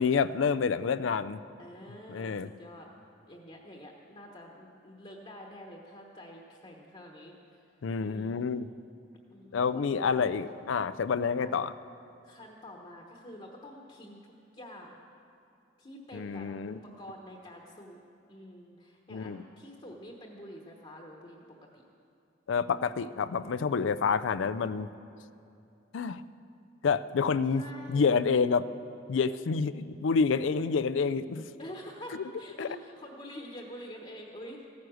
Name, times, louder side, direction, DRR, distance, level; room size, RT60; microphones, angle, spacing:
voice 1, 0.0-1.4 2.1-2.5 7.8-8.7 9.5-11.7 16.1-16.8 19.1-19.4 22.5-24.9 25.9-26.2 26.8-27.6 27.9-28.7 29.1-31.4 32.6-32.7, left 5 dB, 80° left, 14 dB, 0.4 m, -28 dB
voice 2, 1.6-2.9 3.3-7.4 8.0-8.4 9.3-10.5 11.4-11.6 12.2-15.0 15.8-16.5 16.8-18.0 18.3-21.4 21.7-21.8 27.5-28.1 31.6-34.6, equal, 30° left, 0 dB, 1.1 m, -47 dB
15.0 x 9.5 x 6.3 m, 2.6 s
head